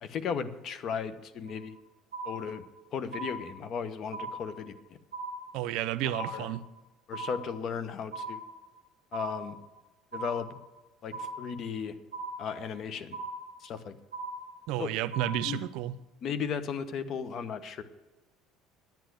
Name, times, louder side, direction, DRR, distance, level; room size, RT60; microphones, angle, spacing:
voice 1, 0.0-1.8 2.2-2.6 2.9-4.7 6.0-6.5 7.1-8.4 9.1-9.6 10.1-10.6 11.0-11.9 12.4-13.2 13.6-14.0 14.8-14.9 15.5-15.6 16.2-17.8, left 6 dB, 50° left, 12 dB, 1.0 m, -35 dB
sound 1, 1.5-1.8 2.1-2.8 3.1-3.8 4.1-4.8 5.1-5.8 6.1-6.8 7.1-7.8 8.1-8.8 9.1-9.8 10.1-10.8 11.1-11.8 12.1-12.8 13.1-13.8 14.1-14.8 15.1-15.8, right 2 dB, 35° left, 4.5 m, -40 dB
voice 2, 5.5-6.6 14.7-16.0, right 13 dB, 70° right, 15 dB, 0.5 m, -31 dB
10.5 x 8.3 x 7.9 m, 1.1 s
supercardioid pair, 95°, 0 cm